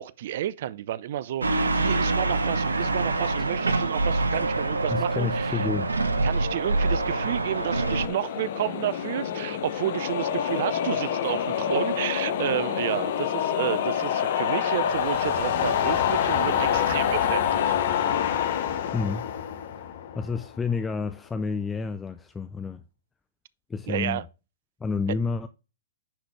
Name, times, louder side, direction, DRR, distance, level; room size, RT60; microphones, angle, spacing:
voice 1, 0.0-5.7 6.2-17.8 23.9-24.2, right 12 dB, 55° right, 0.4 m, -31 dB
sound 1, 1.4-8.1, right 2 dB, 90° right, 0.8 m, -25 dB
voice 2, 4.9-5.9 18.9-19.3 20.1-22.8 23.7-24.2 24.8-25.5, left 5 dB, 15° left, 0.5 m, -29 dB
sound 2, 6.2-20.6, left 9 dB, 60° left, 1.1 m, -27 dB
10.0 x 4.1 x 3.2 m
hypercardioid pair, 115°, 0 cm